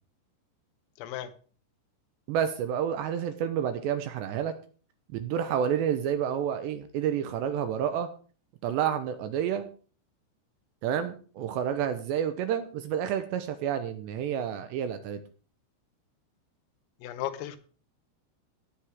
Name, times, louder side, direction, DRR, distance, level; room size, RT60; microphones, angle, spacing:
voice 1, 1.0-1.3 17.0-17.6, left 12 dB, 85° left, 10 dB, 3.7 m, -35 dB
voice 2, 2.3-4.5 5.1-8.1 8.6-9.7 10.8-15.2, right 9 dB, 85° right, 9 dB, 2.6 m, -29 dB
18.0 x 8.5 x 3.6 m, 0.40 s
omnidirectional pair, 5.9 m